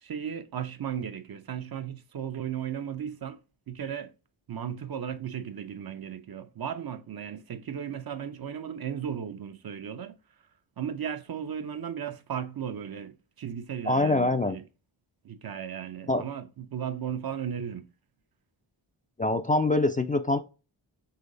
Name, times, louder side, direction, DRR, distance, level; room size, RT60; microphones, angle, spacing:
voice 1, 0.0-3.4 3.7-4.1 4.5-10.2 10.8-14.7 15.2-17.9, right 8 dB, 50° right, 0.6 m, -35 dB
voice 2, 13.9-14.6 16.1-16.2 19.2-20.4, left 2 dB, 20° left, 0.4 m, -24 dB
5.7 x 3.0 x 2.6 m
cardioid pair, 50°, 49 cm